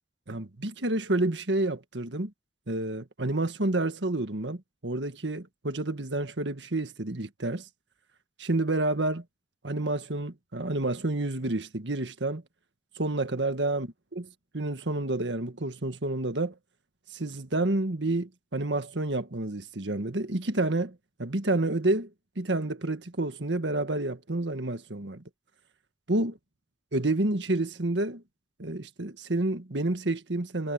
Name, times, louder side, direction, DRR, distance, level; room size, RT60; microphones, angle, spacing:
voice 1, 0.3-2.3 2.7-7.6 8.4-9.2 9.6-12.4 12.9-14.3 14.5-16.5 17.1-22.1 22.4-25.2 26.1-26.3 26.9-28.2 28.6-30.7, right 2 dB, 80° right, 1.7 m, -29 dB
head